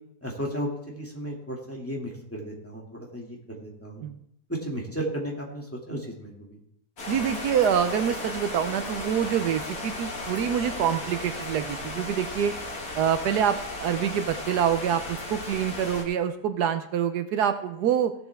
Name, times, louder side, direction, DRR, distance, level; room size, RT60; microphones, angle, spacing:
voice 1, 0.2-4.0 4.6-6.6, right 1 dB, 10° left, -3 dB, 2.3 m, -34 dB
sound 1, 7.0-16.0, left 2 dB, 65° left, 2.5 m, -35 dB
voice 2, 7.1-12.5 12.9-18.1, right 9 dB, 75° right, 10 dB, 1.3 m, -26 dB
16.5 x 7.7 x 3.5 m, 0.75 s
omnidirectional pair, 1.7 m